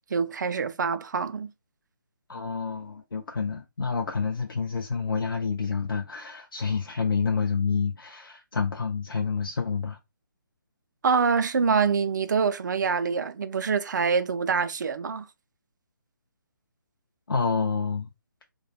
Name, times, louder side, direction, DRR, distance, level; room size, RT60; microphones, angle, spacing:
voice 1, 0.1-1.5 11.0-15.3, right 5 dB, 60° right, 0.4 m, -25 dB
voice 2, 2.3-10.0 17.3-18.1, left 5 dB, 85° left, 0.4 m, -28 dB
2.2 x 2.2 x 3.0 m
figure-of-eight pair, 145°, 11 cm